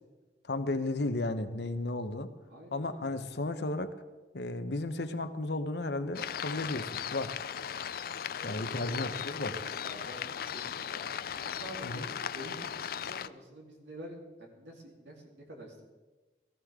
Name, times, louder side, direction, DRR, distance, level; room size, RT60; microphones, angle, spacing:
voice 1, 0.5-2.3 2.7-3.9 4.3-7.4 8.4-9.5 11.8-12.0, left 2 dB, 70° left, 9 dB, 1.0 m, -34 dB
voice 2, 2.5-3.2 8.3-9.2 9.5-15.8, equal, 90° right, -1 dB, 3.5 m, -48 dB
sound 1, 6.1-13.3, left 8 dB, 55° left, 0.4 m, -37 dB
18.0 x 14.5 x 3.7 m, 1.2 s
head